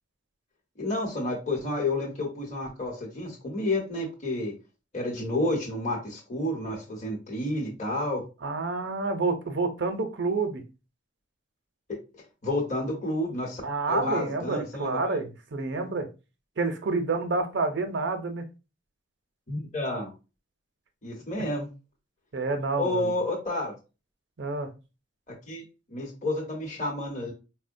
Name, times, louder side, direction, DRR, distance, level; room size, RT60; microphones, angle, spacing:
voice 1, 0.8-4.5 4.9-8.2 12.4-13.6 13.9-15.0 19.5-20.1 21.0-21.7 22.8-23.7 25.5-25.6 25.9-27.3, left 1 dB, 35° left, 1.0 m, -30 dB
voice 2, 8.4-10.6 13.6-16.1 16.6-18.4 22.3-23.1 24.4-24.7, right 3 dB, 60° right, 0.6 m, -28 dB
4.5 x 2.1 x 2.6 m
head